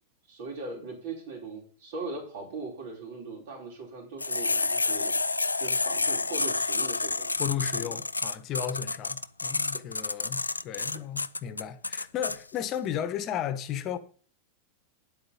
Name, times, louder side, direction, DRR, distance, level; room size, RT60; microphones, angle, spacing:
voice 1, 0.3-5.1 5.6-7.4 7.7-8.0, right 3 dB, 55° right, 4.6 m, -39 dB
sound 1, 4.2-12.4, left 3 dB, 80° left, 0.4 m, -29 dB
voice 2, 7.4-14.0, left 9 dB, 35° left, 1.2 m, -34 dB
10.0 x 8.1 x 5.4 m
figure-of-eight pair, 90°, 0 cm